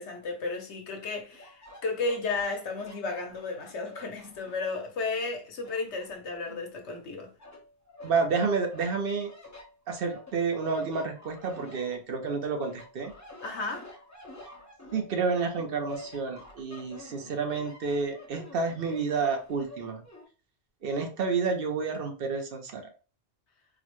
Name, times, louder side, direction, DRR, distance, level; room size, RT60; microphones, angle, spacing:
voice 1, 0.0-7.3 13.4-13.9, left 3 dB, 80° left, 1.1 m, -33 dB
sound 1, 1.3-4.8 5.2-7.0 7.4-8.2 8.7-12.3 12.6-20.2, left 1 dB, 15° left, 0.8 m, -48 dB
voice 2, 8.0-9.3 9.9-13.1 14.9-20.0 20.8-22.8, right 4 dB, 60° right, 0.8 m, -30 dB
3.9 x 2.1 x 3.0 m
omnidirectional pair, 1.1 m